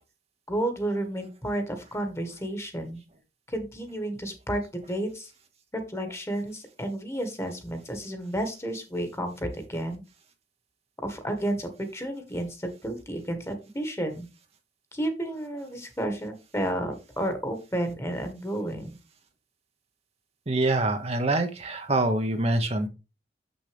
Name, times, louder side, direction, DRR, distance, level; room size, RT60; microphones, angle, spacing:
voice 1, 0.5-3.0 3.5-4.6 4.9-5.3 5.7-10.0 11.0-14.3 14.9-19.0, right 1 dB, 15° left, 6 dB, 1.6 m, -31 dB
voice 2, 20.5-22.9, right 2 dB, 35° right, 6 dB, 1.0 m, -25 dB
7.2 x 6.3 x 3.4 m, 0.28 s
head